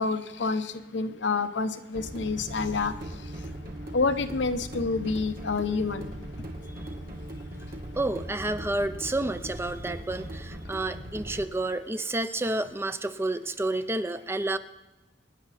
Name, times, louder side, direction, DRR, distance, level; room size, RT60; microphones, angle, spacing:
voice 1, 0.0-2.9 3.9-6.1, left 4 dB, 75° left, 9 dB, 0.9 m, -28 dB
sound 1, 1.9-11.4, right 1 dB, 55° right, 2.1 m, -39 dB
voice 2, 8.0-14.6, right 2 dB, 15° right, 11 dB, 0.5 m, -30 dB
26.0 x 10.0 x 4.2 m, 1.1 s
head